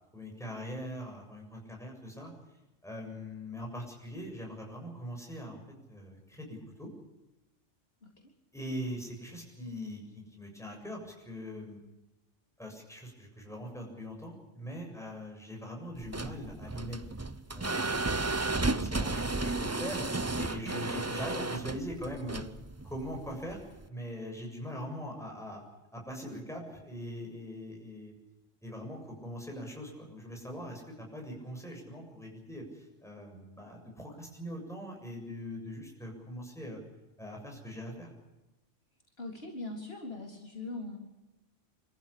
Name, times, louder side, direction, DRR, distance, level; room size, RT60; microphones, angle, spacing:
voice 1, 0.1-2.3 2.8-5.6 5.9-6.9 8.5-11.8 12.6-17.0 17.5-20.0 20.4-22.4 22.8-23.6 23.9-25.6 25.9-28.1 28.6-36.8 37.2-38.1, equal, ahead, 0 dB, 7.4 m, -41 dB
sound 1, 16.0-23.9, right 2 dB, 15° right, 0.6 m, -33 dB
voice 2, 39.2-41.0, left 2 dB, 55° left, 0 dB, 4.0 m, -40 dB
27.5 x 14.5 x 8.6 m, 1.0 s
omnidirectional pair, 1.2 m